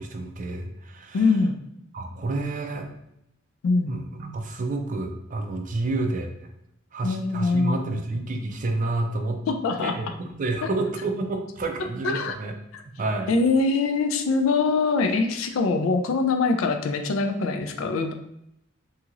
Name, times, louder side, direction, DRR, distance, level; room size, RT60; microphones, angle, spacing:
voice 1, 0.0-1.3 1.9-2.9 3.9-6.5 6.9-9.4 9.8-12.5 12.8-13.3, right 2 dB, 40° right, 4 dB, 0.4 m, -29 dB
voice 2, 1.1-1.6 3.6-4.0 7.0-8.0 9.5-10.0 12.0-12.4 12.7-12.8 13.3-18.1, left 3 dB, 80° left, 7 dB, 0.4 m, -23 dB
2.9 x 2.8 x 2.4 m, 0.80 s
head